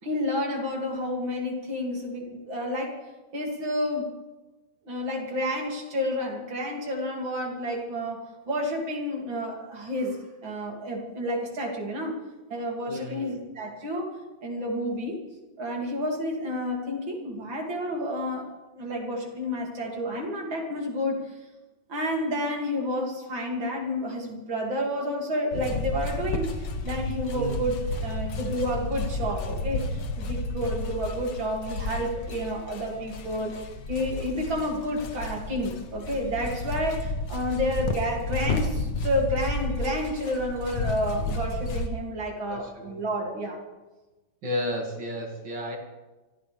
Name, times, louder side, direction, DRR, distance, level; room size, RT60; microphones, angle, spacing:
voice 1, 0.0-2.9 3.3-4.1 4.9-12.2 12.5-14.1 14.4-15.2 15.6-18.5 18.8-21.2 21.9-27.8 28.0-33.5 33.9-43.6, equal, 85° right, 0 dB, 3.5 m, -30 dB
voice 2, 12.9-13.4 27.3-27.6 42.5-43.0 44.4-45.8, equal, 70° right, 1 dB, 3.1 m, -33 dB
sound 1, 25.5-41.9, left 2 dB, 65° left, 1.8 m, -32 dB
25.0 x 15.0 x 3.5 m, 1.1 s
omnidirectional pair, 2.1 m